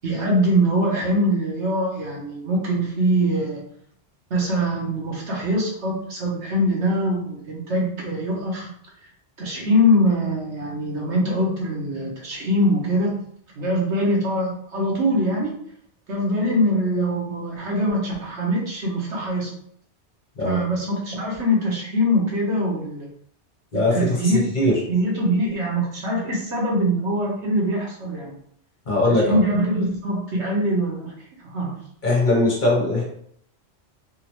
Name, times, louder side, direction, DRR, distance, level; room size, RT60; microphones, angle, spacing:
voice 1, 0.0-3.6 4.3-8.7 9.4-13.2 13.6-15.6 16.1-19.5 20.4-23.1 23.9-24.5 24.9-28.4 29.3-31.1 31.4-31.7, equal, 75° right, -2 dB, 1.4 m, -23 dB
voice 2, 23.7-24.8 28.9-29.4 32.0-33.0, left 2 dB, 45° left, -4 dB, 1.3 m, -20 dB
3.7 x 3.0 x 3.0 m, 0.67 s
omnidirectional pair, 1.2 m